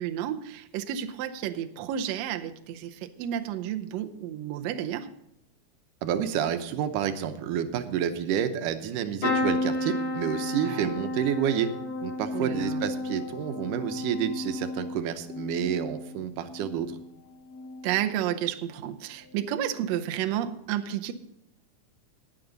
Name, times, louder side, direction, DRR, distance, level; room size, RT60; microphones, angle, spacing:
voice 1, 0.0-5.1 10.6-10.9 12.3-12.8 17.8-21.1, right 10 dB, 75° right, 7 dB, 1.7 m, -31 dB
voice 2, 6.0-11.7 12.0-17.0, right 9 dB, 90° right, 9 dB, 2.4 m, -29 dB
sound 1, 9.2-17.1 17.5-18.0 19.3-19.5 19.7-19.8, left 2 dB, 45° left, 1.3 m, -32 dB
19.5 x 7.0 x 3.9 m, 0.81 s
omnidirectional pair, 3.6 m